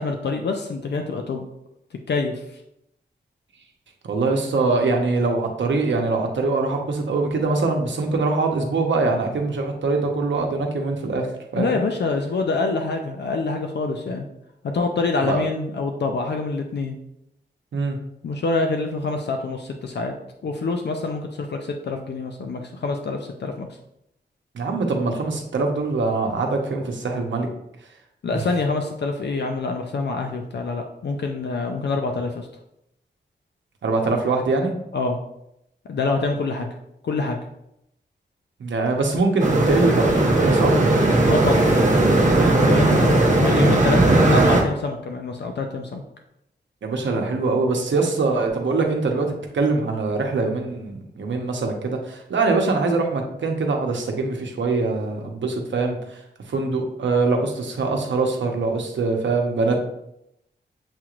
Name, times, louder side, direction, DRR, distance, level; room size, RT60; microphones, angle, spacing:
voice 1, 0.0-1.5 2.1-2.4 11.5-14.3 14.6-16.9 18.2-20.1 20.4-23.7 28.2-32.5 34.9-35.2 35.9-36.7 37.0-37.4 41.3-41.7 42.6-46.0, left 3 dB, 65° left, 4 dB, 0.5 m, -26 dB
voice 2, 4.0-11.3 11.5-11.8 15.2-15.4 17.7-18.0 24.5-27.5 33.8-34.7 38.6-40.8 46.8-56.0 56.5-59.8, right 3 dB, 85° right, 3 dB, 0.8 m, -23 dB
sound 1, 39.4-44.6, right 2 dB, 40° right, 0.8 m, -17 dB
7.2 x 3.0 x 2.4 m, 0.80 s
wide cardioid pair, 130°, 19 cm